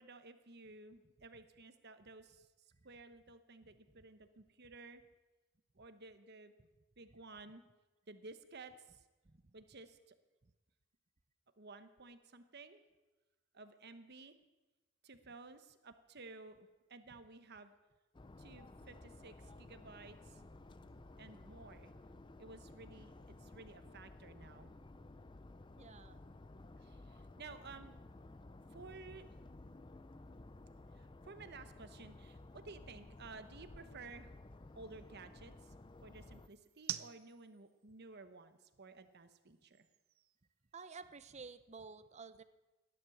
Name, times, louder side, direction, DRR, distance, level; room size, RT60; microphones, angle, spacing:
voice 1, 0.0-2.5 2.8-5.0 5.8-6.5 7.0-7.6 8.1-9.0 9.5-10.1 11.6-12.8 13.5-14.4 15.0-17.7 18.4-20.4 21.2-21.9 22.4-23.1 23.4-24.7 26.8-27.9 28.7-29.4 30.9-34.4 34.8-35.8 36.0-39.9, right 3 dB, 50° right, 10 dB, 1.1 m, -54 dB
sound 1, 18.1-36.5, left 2 dB, 20° left, 0.5 m, -55 dB
voice 2, 25.8-26.2 40.7-42.4, right 4 dB, 30° right, 13 dB, 0.7 m, -52 dB
sound 2, 27.1-41.3, right 12 dB, 70° right, 0.7 m, -55 dB
16.5 x 11.0 x 7.2 m, 1.1 s
head